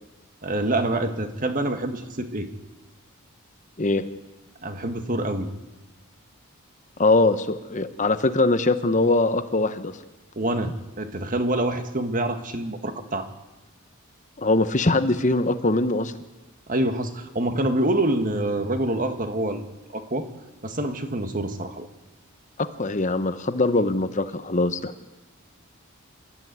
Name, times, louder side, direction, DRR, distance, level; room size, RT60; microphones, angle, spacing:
voice 1, 0.4-2.5 4.6-5.5 10.4-13.3 16.7-19.6 19.9-20.3 20.6-21.9, right 1 dB, 40° right, 7 dB, 1.8 m, -26 dB
voice 2, 7.0-10.0 14.4-16.1 22.6-24.9, left 2 dB, 35° left, 10 dB, 1.0 m, -22 dB
26.5 x 13.5 x 9.6 m, 1.1 s
head